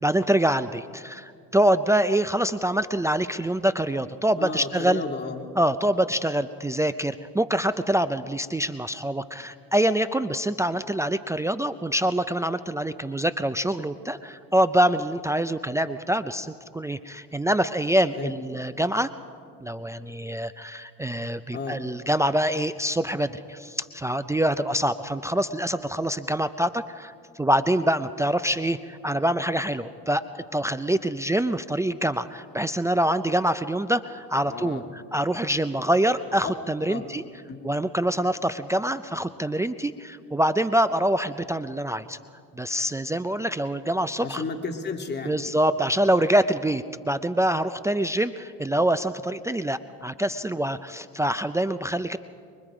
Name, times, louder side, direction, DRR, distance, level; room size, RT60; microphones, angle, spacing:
voice 1, 0.0-5.0 5.6-19.1 19.6-30.2 30.5-37.2 37.6-42.2 42.5-44.4 45.2-52.2, right 1 dB, 10° right, 11 dB, 0.5 m, -25 dB
voice 2, 4.4-5.5 18.1-18.3 21.5-21.8 34.4-34.9 36.4-36.5 36.9-37.1 37.5-37.6 44.2-45.4, left 4 dB, 30° left, 3 dB, 2.6 m, -33 dB
25.0 x 23.0 x 5.0 m, 2.2 s
supercardioid pair, 100°, 36 cm